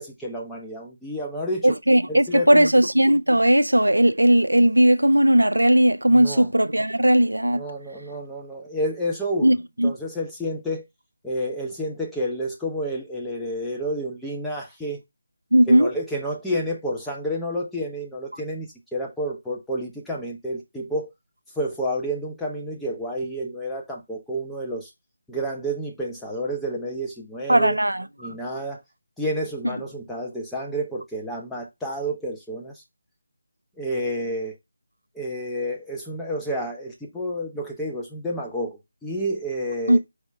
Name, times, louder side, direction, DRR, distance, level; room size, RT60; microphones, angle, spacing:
voice 1, 0.0-1.8 2.1-2.7 6.1-6.5 7.6-9.5 9.8-10.8 11.2-15.0 15.7-21.1 21.6-24.9 25.3-27.8 28.2-28.8 29.2-32.8 33.8-34.5 35.1-40.0, equal, 5° left, 0.8 m, -30 dB
voice 2, 1.6-7.6 9.4-9.9 15.5-15.9 27.5-28.3 29.6-29.8 39.9-40.0, right 1 dB, 85° right, 0.4 m, -18 dB
4.8 x 2.8 x 3.2 m
figure-of-eight pair, 160°, 0 cm